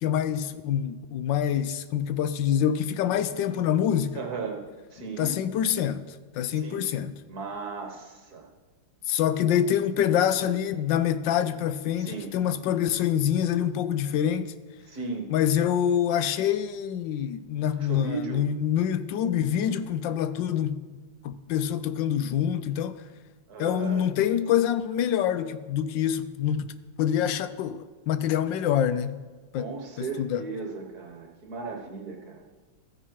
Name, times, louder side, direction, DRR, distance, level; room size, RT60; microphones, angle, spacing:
voice 1, 0.0-4.2 5.2-6.0 6.3-7.2 9.1-14.5 15.3-20.8 21.2-23.0 23.6-29.2 29.5-29.7 30.0-30.5, left 9 dB, 75° left, 1.3 m, -26 dB
voice 2, 4.1-5.4 6.5-6.9 7.3-8.5 12.0-12.3 14.9-15.3 17.8-18.4 23.5-24.1 29.5-32.4, right 4 dB, 55° right, 1.8 m, -36 dB
13.5 x 10.0 x 4.6 m
omnidirectional pair, 2.2 m